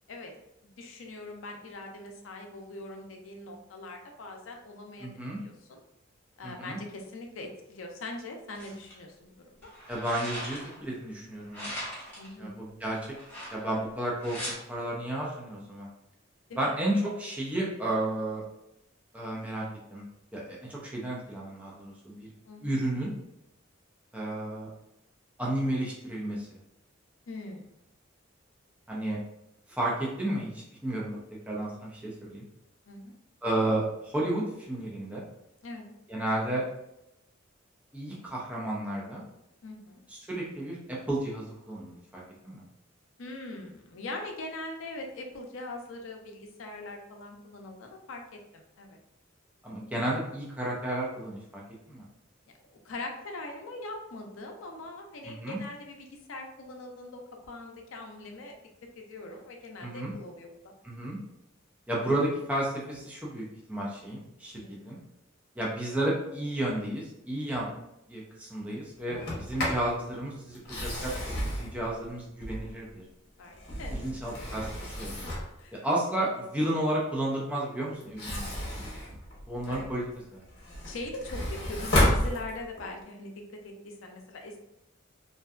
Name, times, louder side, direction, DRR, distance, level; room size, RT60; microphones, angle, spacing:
voice 1, 0.6-5.1 5.4-5.8 6.4-9.7 12.2-12.5 16.5-16.8 22.5-22.8 27.3-27.7 32.9-33.1 35.6-35.9 39.6-40.0 43.2-48.2 48.5-49.0 52.7-58.5 59.0-60.5 64.5-64.9 69.2-69.5 73.4-74.0 75.2-75.3 75.6-75.8 79.6-79.9 80.8-84.6, left 2 dB, 75° left, 2 dB, 0.5 m, -42 dB
voice 2, 5.0-5.4 6.4-6.8 9.9-11.7 12.4-13.1 13.5-15.9 16.6-18.4 19.1-19.6 19.9-20.0 20.3-22.3 22.6-23.1 24.1-24.7 25.4-26.5 28.9-29.2 29.7-31.2 31.5-32.5 33.4-35.3 36.1-36.6 37.9-39.2 40.1-42.6 49.6-51.4 51.9-52.1 55.2-55.6 59.8-60.1 60.8-61.2 61.9-65.0 65.6-67.7 68.1-73.0 73.9-75.3 75.7-78.8 79.5-80.0 80.3-80.4, right 1 dB, 5° right, -5 dB, 0.5 m, -32 dB
sound 1, 8.5-8.9 9.6-10.8 11.5-12.3 13.1-13.8 14.2-14.6, equal, 10° left, 0.9 m, -39 dB
Sliding door, 69.1-69.9 70.6-72.9 73.4-75.6 78.0-79.9 80.4-82.9, left 1 dB, 55° left, 0.8 m, -31 dB
2.6 x 2.2 x 2.3 m, 0.84 s
head